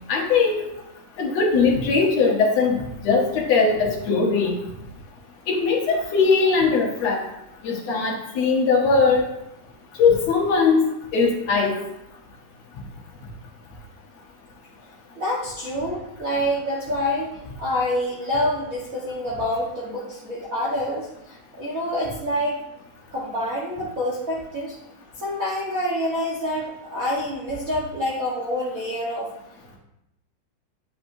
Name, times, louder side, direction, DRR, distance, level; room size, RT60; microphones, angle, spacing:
voice 1, 0.1-0.6 1.2-2.8 3.0-4.6 5.5-7.2 7.6-9.2 10.0-10.8 11.1-11.7, left 4 dB, 65° left, -1 dB, 1.9 m, -20 dB
voice 2, 15.1-17.3 17.6-22.6 23.1-24.7 25.2-29.3, left 1 dB, 70° right, -6 dB, 0.8 m, -27 dB
9.4 x 6.0 x 2.6 m, 0.87 s
omnidirectional pair, 3.8 m